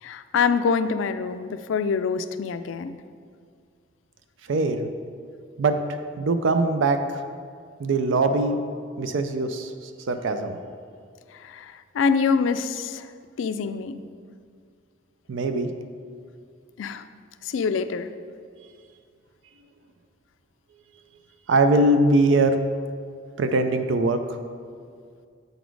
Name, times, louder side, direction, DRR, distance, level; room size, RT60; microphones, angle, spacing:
voice 1, 0.0-3.0 11.3-13.1 13.4-14.0 16.8-17.0 17.4-18.1, left 5 dB, 75° left, 11 dB, 0.3 m, -25 dB
voice 2, 4.5-4.9 5.6-5.8 6.2-7.2 7.8-8.6 9.0-10.6 15.3-15.7 21.5-22.6 23.4-24.4, right 2 dB, 75° right, 8 dB, 0.4 m, -22 dB
8.0 x 4.1 x 4.6 m, 2.1 s
head